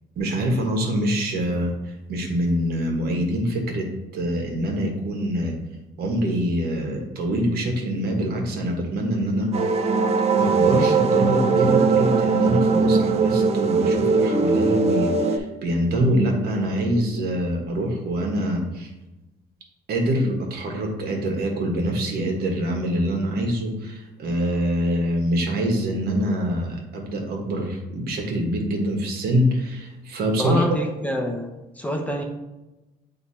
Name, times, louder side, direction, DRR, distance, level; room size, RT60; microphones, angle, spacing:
voice 1, 0.2-1.7 2.1-3.9 4.1-5.5 6.0-9.5 10.3-18.9 19.9-30.6, equal, 65° right, 1 dB, 1.5 m, -24 dB
sound 1, 9.5-15.4, right 4 dB, 40° right, 0.7 m, -20 dB
voice 2, 30.4-32.2, left 1 dB, 10° left, 2 dB, 0.8 m, -27 dB
8.0 x 2.9 x 4.3 m, 1.0 s
cardioid pair, 110°, 17 cm